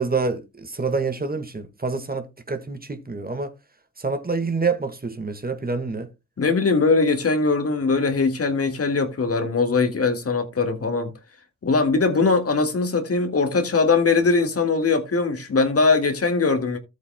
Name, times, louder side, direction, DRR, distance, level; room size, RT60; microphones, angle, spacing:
voice 1, 0.0-3.5 4.0-6.1, right 4 dB, 30° right, 1.7 m, -27 dB
voice 2, 6.4-11.1 11.6-16.8, left 4 dB, 50° left, 2.0 m, -21 dB
13.5 x 8.3 x 2.2 m
supercardioid pair, 50°, 30 cm